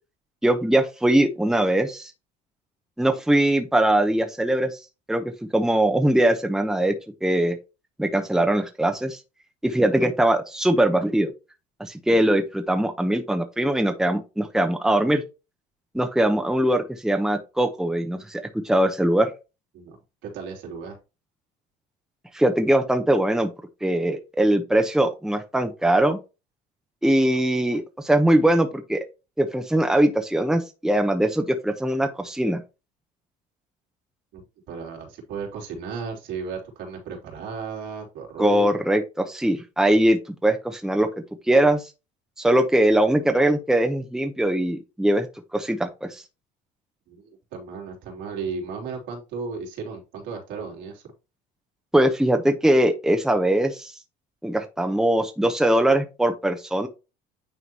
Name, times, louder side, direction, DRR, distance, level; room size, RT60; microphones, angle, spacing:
voice 1, 0.4-2.1 3.0-4.8 5.1-5.2 5.5-6.9 7.2-7.6 8.0-9.2 9.6-11.3 11.8-15.2 15.9-19.3 22.3-23.5 23.8-26.2 27.0-29.0 29.4-32.6 38.4-41.1 41.5-41.9 42.4-45.3 45.5-46.2 51.9-53.9 54.4-56.9, right 1 dB, 5° right, 5 dB, 1.0 m, -21 dB
voice 2, 20.2-21.0 34.3-34.4 34.7-38.8 47.1-47.2 47.5-51.0, right 5 dB, 75° right, 0 dB, 3.1 m, -34 dB
9.5 x 3.8 x 3.0 m, 0.28 s
supercardioid pair, 90°, 19 cm